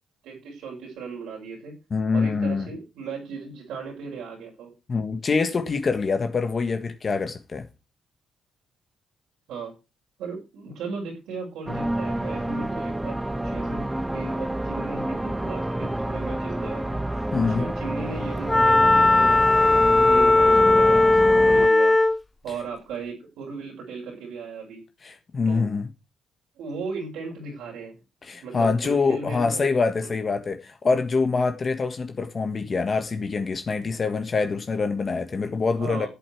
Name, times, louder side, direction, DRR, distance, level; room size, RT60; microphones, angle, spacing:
voice 1, 0.2-1.7 2.1-4.7 9.5-9.7 10.2-13.8 14.1-17.0 17.4-22.0 22.4-24.8 25.5-25.7 26.6-28.0 28.4-29.7 30.0-30.1 35.8-36.1, right 4 dB, 85° right, 5.8 m, -36 dB
voice 2, 1.9-2.7 4.9-7.7 17.3-17.7 25.0-25.9 28.2-36.1, left 4 dB, 40° left, 1.5 m, -25 dB
sound 1, 11.7-21.7, right 1 dB, 10° right, 0.9 m, -29 dB
Wind instrument woodwind instrument, 18.5-22.2, left 2 dB, 15° left, 0.6 m, -17 dB
13.0 x 8.1 x 4.6 m
cardioid pair, 90°, 0 cm